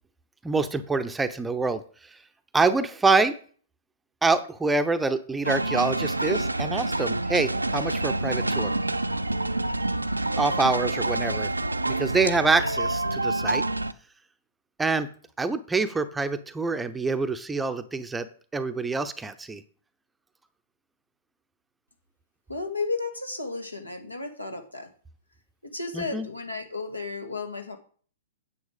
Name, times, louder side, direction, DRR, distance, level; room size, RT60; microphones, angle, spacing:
voice 1, 0.4-1.8 2.1-2.2 2.5-3.3 4.2-8.7 10.4-11.5 11.9-13.6 14.8-15.1 15.4-18.3 18.5-19.6 25.9-26.3, right 3 dB, 10° right, 9 dB, 0.7 m, -26 dB
sound 1, 5.4-13.9, right 2 dB, 85° right, 0.5 m, -27 dB
voice 2, 22.5-24.9 25.6-27.8, left 3 dB, 85° left, 5 dB, 2.0 m, -33 dB
9.5 x 7.9 x 5.1 m, 0.43 s
figure-of-eight pair, 110°, 0 cm